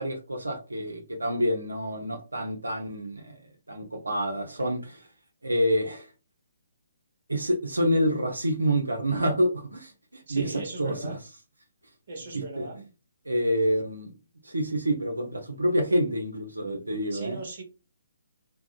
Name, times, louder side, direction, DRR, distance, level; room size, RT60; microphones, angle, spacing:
voice 1, 0.0-3.4 3.7-5.1 5.4-6.1 7.3-11.2 12.3-12.7 13.3-14.1 14.4-17.4, equal, 85° right, 3 dB, 0.6 m, -27 dB
voice 2, 10.3-11.2 12.1-12.8 17.1-17.6, right 2 dB, 50° right, 2 dB, 0.9 m, -37 dB
3.5 x 2.1 x 2.4 m, 0.33 s
figure-of-eight pair, 135°, 0 cm